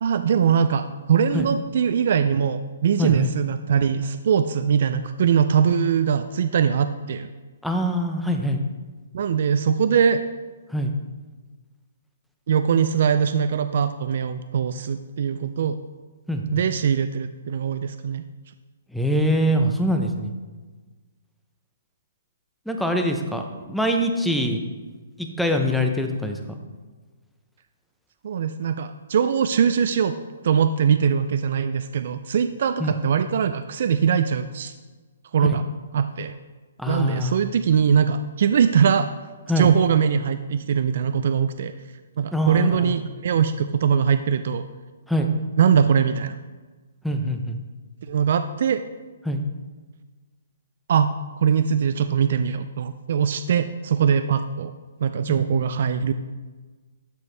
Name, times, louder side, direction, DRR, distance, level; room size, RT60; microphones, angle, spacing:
voice 1, 0.0-7.3 9.1-10.2 12.5-15.8 16.5-18.2 28.2-30.1 30.4-34.7 35.3-35.6 35.9-36.3 36.9-39.1 39.6-41.7 42.2-44.6 45.6-46.4 48.1-48.8 50.9-51.1 51.4-54.7 55.0-56.1, right 7 dB, 55° right, 9 dB, 0.3 m, -21 dB
voice 2, 3.0-3.3 7.6-8.6 10.7-10.9 16.3-16.4 18.9-20.3 22.7-24.6 25.2-26.6 32.8-32.9 35.4-35.6 36.8-37.4 39.5-39.7 42.3-43.0 45.1-45.3 47.0-47.6 49.2-49.4 55.3-55.4, equal, ahead, 3 dB, 0.5 m, -24 dB
12.0 x 4.6 x 3.3 m, 1.3 s
hypercardioid pair, 165°, 0 cm